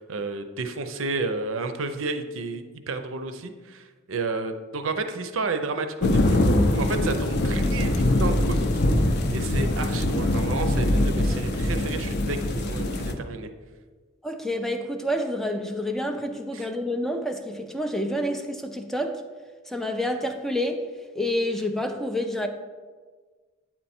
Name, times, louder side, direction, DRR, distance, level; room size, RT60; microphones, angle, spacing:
voice 1, 0.0-6.4 6.7-13.5 16.5-16.7, right 3 dB, 80° right, 8 dB, 0.6 m, -31 dB
sound 1, 6.0-13.1, left 1 dB, 55° left, 0.6 m, -23 dB
voice 2, 14.2-19.2 19.7-20.8 21.2-22.5, left 1 dB, ahead, 4 dB, 0.4 m, -28 dB
8.5 x 4.4 x 4.3 m, 1.4 s
head